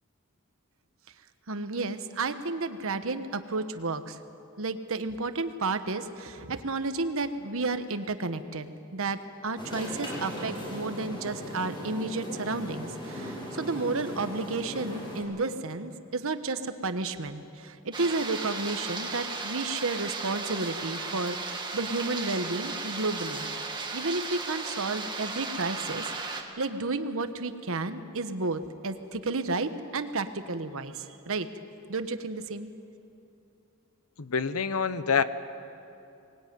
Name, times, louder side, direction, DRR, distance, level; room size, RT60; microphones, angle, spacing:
voice 1, 1.5-4.2 4.6-23.5 23.9-31.5 31.9-32.7, right 3 dB, 65° right, 9 dB, 1.3 m, -32 dB
sound 1, 9.6-15.2, equal, 20° left, 7.4 m, -38 dB
sound 2, 17.9-26.4, right 4 dB, 20° right, 2.1 m, -35 dB
voice 2, 34.2-35.2, left 6 dB, 85° left, 12 dB, 1.0 m, -26 dB
23.5 x 20.0 x 9.4 m, 2.8 s
head